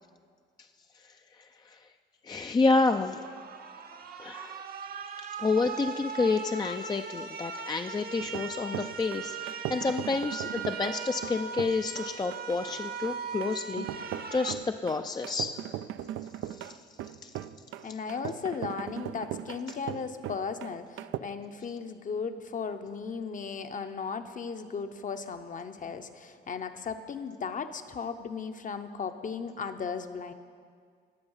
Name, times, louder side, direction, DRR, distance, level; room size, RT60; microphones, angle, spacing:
voice 1, 1.4-1.8 2.2-3.2 4.2-4.6 5.4-15.7 16.5-16.8 17.2-17.3, left 3 dB, 20° left, 6 dB, 0.4 m, -29 dB
sound 1, 3.0-14.5, right 5 dB, 50° right, 0.8 m, -39 dB
sound 2, 8.2-21.2, right 12 dB, 80° right, 0.4 m, -39 dB
voice 2, 17.8-30.3, left 5 dB, 40° left, 8 dB, 0.8 m, -36 dB
18.5 x 6.9 x 5.6 m, 2.1 s
cardioid pair, 90°, 20 cm